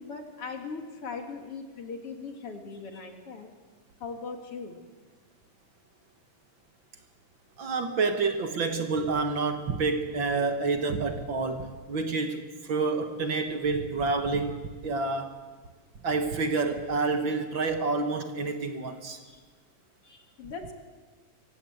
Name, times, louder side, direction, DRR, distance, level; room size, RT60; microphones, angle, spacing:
voice 1, 0.0-3.5 4.0-4.8 19.2-19.4 20.0-20.7, left 4 dB, 45° left, 3 dB, 2.5 m, -39 dB
voice 2, 7.6-15.4 16.0-19.2, right 3 dB, 60° right, 6 dB, 1.2 m, -28 dB
24.0 x 16.5 x 8.0 m, 1.4 s
omnidirectional pair, 4.1 m